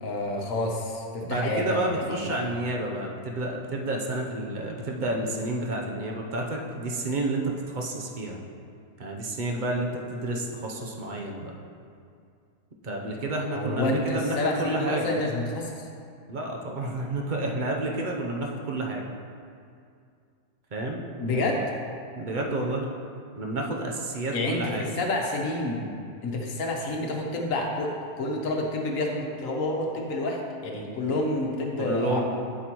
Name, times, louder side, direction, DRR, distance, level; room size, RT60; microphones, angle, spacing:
voice 1, 0.0-2.5 13.5-15.9 21.2-21.7 24.3-25.9 26.2-27.9 28.2-32.2, left 2 dB, 60° left, 0 dB, 1.3 m, -29 dB
voice 2, 1.2-8.4 9.0-11.5 12.8-15.1 16.3-19.0 20.7-21.5 22.1-22.9 23.4-24.9 31.8-32.2, right 2 dB, 50° right, 0 dB, 0.6 m, -30 dB
8.5 x 7.9 x 3.0 m, 2.3 s
omnidirectional pair, 1.7 m